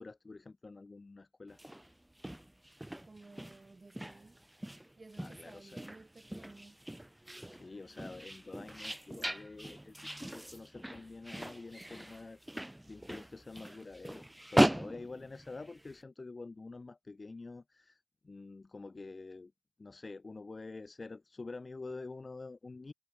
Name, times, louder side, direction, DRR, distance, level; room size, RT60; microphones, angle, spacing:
voice 1, 0.0-1.6 5.2-5.8 7.5-19.5 19.8-22.9, left 3 dB, 70° left, 2.0 m, -47 dB
sound 1, 1.5-16.0, right 1 dB, 15° right, 0.3 m, -38 dB
voice 2, 3.1-4.4 5.0-6.8, right 3 dB, 65° right, 1.4 m, -55 dB
wide cardioid pair, 60°, 0 cm